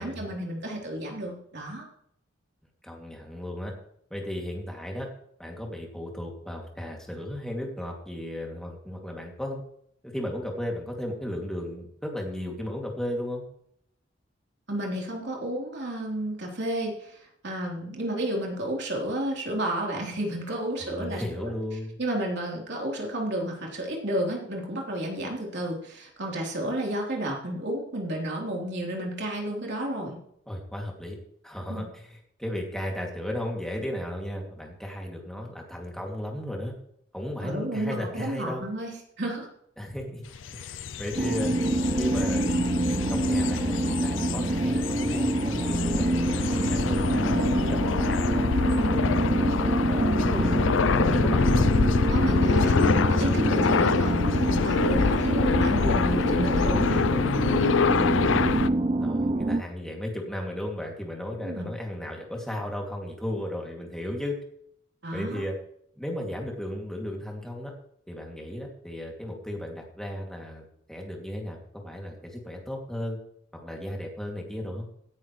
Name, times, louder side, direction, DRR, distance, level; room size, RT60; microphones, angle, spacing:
voice 1, 0.0-1.8 14.7-21.5 22.0-30.2 31.7-31.8 37.4-38.9 39.2-39.5 52.1-57.0 61.4-61.7 65.0-65.4, right 1 dB, 60° right, -2 dB, 3.7 m, -31 dB
voice 2, 2.8-3.7 4.1-5.1 5.4-9.6 10.0-13.4 20.8-22.0 30.5-31.2 31.4-36.7 37.1-38.6 39.8-40.3 40.5-41.5 42.0-48.5 48.7-51.7 54.9-55.4 57.8-58.6 59.0-64.4 65.1-65.5 66.0-67.7 68.1-73.2 73.5-74.9, left 1 dB, 5° left, -1 dB, 2.5 m, -35 dB
sound 1, 40.3-58.7, left 5 dB, 75° left, 0.5 m, -26 dB
sound 2, 41.2-59.6, right 2 dB, 30° right, 0.6 m, -26 dB
17.5 x 10.0 x 3.2 m, 0.69 s
head